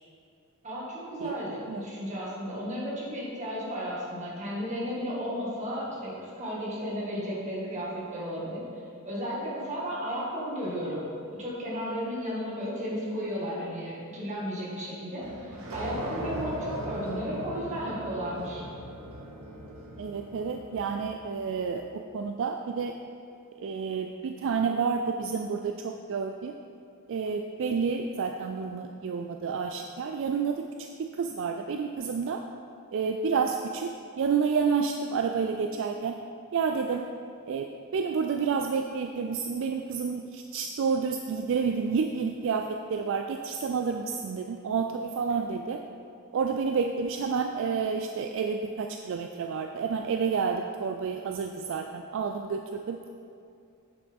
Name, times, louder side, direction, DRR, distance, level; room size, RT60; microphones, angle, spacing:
voice 1, 0.6-8.6 9.0-18.7, equal, 35° right, -6 dB, 1.8 m, -34 dB
sound 1, 15.2-21.6, equal, 75° right, 1.1 m, -39 dB
voice 2, 20.0-23.0 23.6-26.5 27.1-32.4 32.9-36.2 36.5-37.1 37.5-45.8 46.3-53.0, right 5 dB, 60° right, 5 dB, 0.3 m, -30 dB
8.2 x 7.0 x 3.5 m, 2.4 s
head